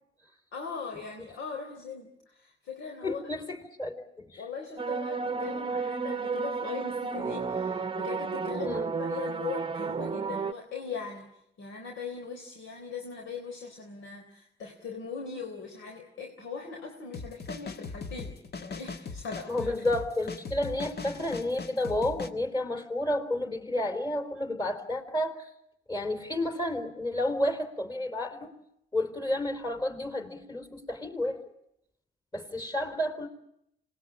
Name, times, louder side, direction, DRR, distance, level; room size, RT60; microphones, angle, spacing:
voice 1, 0.5-3.2 4.4-11.3 11.6-19.7, left 5 dB, 75° left, 3 dB, 3.8 m, -40 dB
voice 2, 3.0-4.4 8.6-8.9 19.5-25.4 25.9-28.5 28.9-31.4 32.3-33.3, left 1 dB, 20° left, 9 dB, 4.2 m, -31 dB
sound 1, 4.8-10.5, right 5 dB, 25° right, 0.9 m, -32 dB
sound 2, 17.1-22.3, left 4 dB, 55° left, 1.7 m, -39 dB
26.5 x 20.0 x 8.7 m, 0.78 s
cardioid pair, 90°, 20 cm